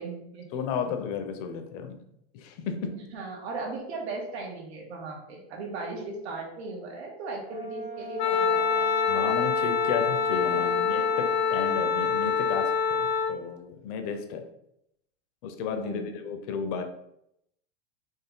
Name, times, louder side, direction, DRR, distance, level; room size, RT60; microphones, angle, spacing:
voice 1, 0.0-0.5 2.9-8.9 10.4-10.7 15.7-16.1, right 3 dB, 85° right, 0 dB, 1.6 m, -37 dB
voice 2, 0.5-2.0 2.3-2.9 9.1-14.4 15.4-16.8, left 6 dB, 35° left, 6 dB, 0.6 m, -33 dB
Brass instrument, 7.5-11.6, right 1 dB, 20° right, 0.8 m, -40 dB
Wind instrument woodwind instrument, 8.2-13.3, left 6 dB, 85° left, 0.9 m, -25 dB
4.4 x 3.1 x 3.8 m, 0.77 s
supercardioid pair, 175°, 32 cm